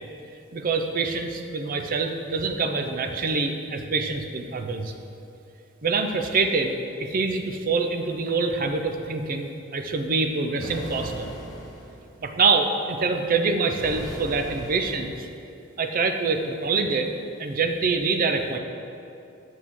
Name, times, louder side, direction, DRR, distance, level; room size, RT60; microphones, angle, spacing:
voice 1, 0.5-4.9 5.8-6.7 7.0-11.3 12.2-15.3 15.8-17.1 17.4-18.6, right 4 dB, 45° right, 6 dB, 0.5 m, -25 dB
sound 1, 10.6-12.0 13.8-15.2, equal, 20° left, 1.1 m, -38 dB
9.3 x 6.3 x 3.7 m, 2.7 s
head